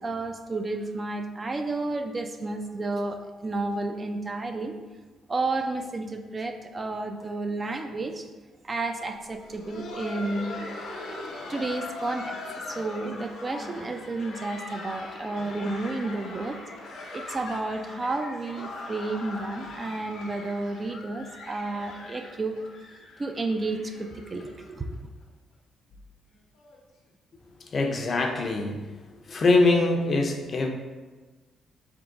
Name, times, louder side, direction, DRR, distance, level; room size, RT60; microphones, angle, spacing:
voice 1, 0.0-4.7 5.3-8.3 8.6-10.5 11.5-12.4 12.7-16.6 17.1-22.6 23.2-24.9, right 2 dB, 30° right, 5 dB, 0.4 m, -31 dB
Laughter, 9.3-24.9 25.2-25.3 25.9-26.0 26.6-26.8 27.8-27.9, left 2 dB, 80° left, 0.8 m, -40 dB
voice 2, 27.6-28.8 29.3-30.7, left 3 dB, 45° left, 3 dB, 0.5 m, -23 dB
3.6 x 2.9 x 3.8 m, 1.3 s
cardioid pair, 90°, 0 cm